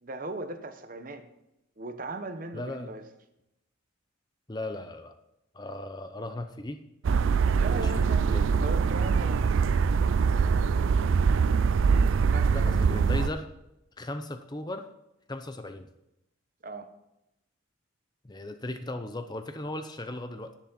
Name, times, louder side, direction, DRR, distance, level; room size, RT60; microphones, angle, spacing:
voice 1, 0.0-1.2 1.8-3.0 7.5-9.5 9.9-11.0 12.3-12.8 16.6-16.9, right 2 dB, 40° right, 8 dB, 0.9 m, -39 dB
voice 2, 2.5-2.9 4.5-5.1 5.5-6.8 7.7-8.7 12.5-13.5 14.0-14.9 15.3-15.9 18.2-20.5, left 2 dB, 20° left, 8 dB, 0.6 m, -37 dB
sound 1, 7.0-13.3, right 5 dB, 70° right, 0.4 m, -23 dB
10.5 x 10.5 x 4.1 m, 0.86 s
head